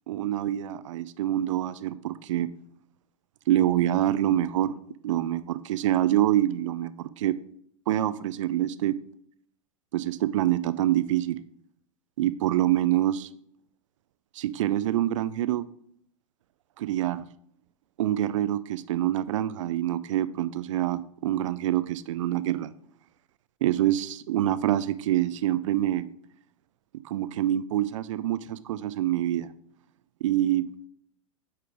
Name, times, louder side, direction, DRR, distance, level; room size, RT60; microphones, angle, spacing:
voice 1, 0.1-2.5 3.5-4.7 5.0-7.4 7.9-9.0 9.9-11.4 12.2-13.3 14.4-15.7 16.8-17.3 18.0-22.7 23.6-26.1 27.0-29.5 30.2-30.7, right 13 dB, 65° right, 15 dB, 0.5 m, -26 dB
8.3 x 4.4 x 3.6 m, 0.67 s
hypercardioid pair, 100°, 17 cm